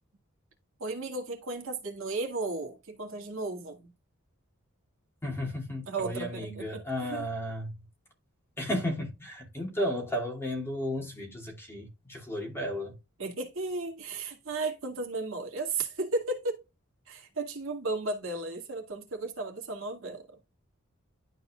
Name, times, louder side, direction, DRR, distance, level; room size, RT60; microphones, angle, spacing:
voice 1, 0.8-3.9 5.9-7.2 13.2-16.6 17.1-20.2, right 3 dB, 65° right, 2.1 m, -34 dB
voice 2, 5.2-7.8 8.6-13.0, equal, 10° left, 2.5 m, -34 dB
11.5 x 4.2 x 2.4 m
head